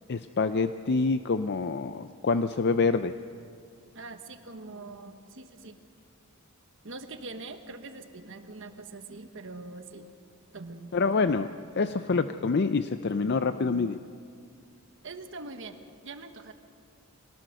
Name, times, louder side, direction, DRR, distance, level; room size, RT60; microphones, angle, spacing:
voice 1, 0.1-3.1 10.9-11.5 11.8-14.0, left 4 dB, 50° left, 10 dB, 0.5 m, -26 dB
voice 2, 3.9-5.8 6.8-10.1 10.5-10.9 15.0-15.8 16.0-16.5, right 3 dB, 60° right, 7 dB, 1.3 m, -43 dB
25.0 x 18.5 x 6.6 m, 2.3 s
head